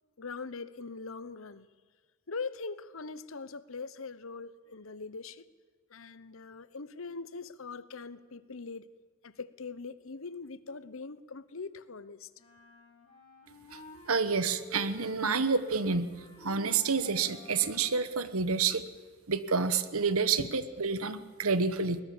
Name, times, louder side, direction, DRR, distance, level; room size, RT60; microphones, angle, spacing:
voice 1, 0.2-1.7 2.3-5.4 5.9-8.9 9.2-12.3 20.4-20.5, left 4 dB, 65° left, 15 dB, 0.9 m, -42 dB
sound 1, 12.4-18.1, equal, 25° left, 6.1 m, -51 dB
voice 2, 14.1-16.1 16.4-18.8 19.3-22.0, right 5 dB, 75° right, 13 dB, 1.2 m, -29 dB
21.5 x 19.0 x 7.2 m, 1.5 s
head